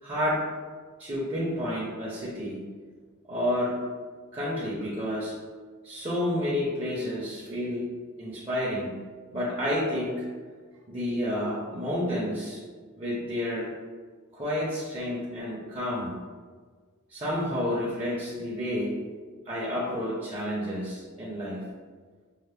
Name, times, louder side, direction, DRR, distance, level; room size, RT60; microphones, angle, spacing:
voice 1, 0.0-0.5 1.0-2.6 3.3-3.8 4.3-5.4 5.8-7.9 8.2-8.9 9.3-10.2 10.9-12.6 13.0-13.7 14.3-16.1 17.1-19.0 19.4-21.6, left 1 dB, 25° right, -6 dB, 0.7 m, -30 dB
5.4 x 2.1 x 3.3 m, 1.5 s
head